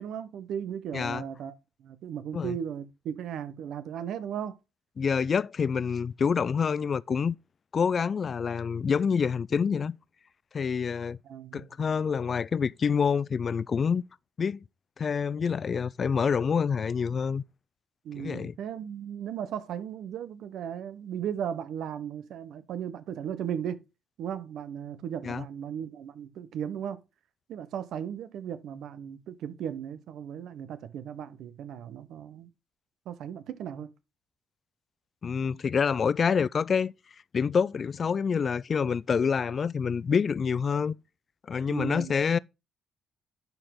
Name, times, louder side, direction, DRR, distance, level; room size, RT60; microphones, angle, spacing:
voice 1, 0.0-1.5 1.8-4.5 11.2-11.7 18.0-23.8 24.2-27.0 27.5-32.5 33.1-33.9 41.7-42.1, right 9 dB, 75° right, 1.1 m, -36 dB
voice 2, 0.9-1.2 2.3-2.6 5.0-7.4 7.7-10.0 10.5-11.2 11.5-14.0 14.4-14.6 15.0-17.4 18.1-18.5 25.2-25.5 35.2-36.9 37.3-41.0 41.5-42.4, left 6 dB, 45° left, 0.4 m, -27 dB
10.5 x 4.9 x 3.7 m
cardioid pair, 90°, 0 cm